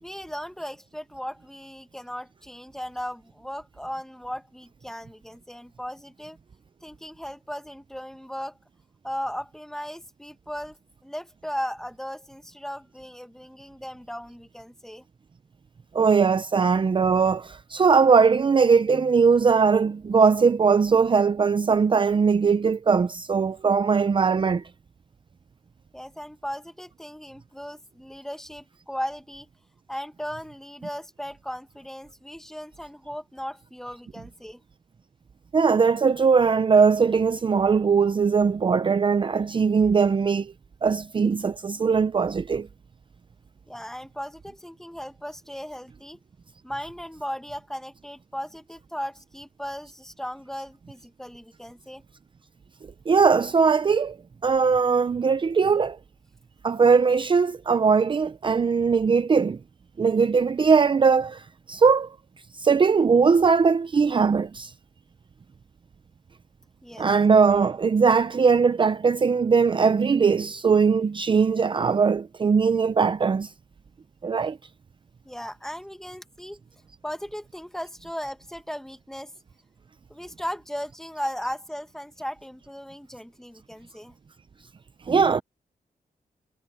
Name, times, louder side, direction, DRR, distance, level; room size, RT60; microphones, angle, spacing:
voice 1, 0.0-6.4 6.8-8.6 9.0-15.0 18.9-19.1 25.9-29.5 29.9-34.6 43.7-46.2 46.6-52.0 66.8-67.1 75.2-76.6 77.0-79.3 80.1-84.1, equal, 5° left, 1.5 m, -37 dB
voice 2, 15.9-24.6 35.5-40.5 40.8-42.7 53.1-54.2 54.4-56.0 56.6-59.6 60.0-62.2 62.6-64.7 67.0-73.5 74.2-74.6 85.1-85.4, right 5 dB, 35° right, 0.5 m, -20 dB
wide cardioid pair, 130°, 15 cm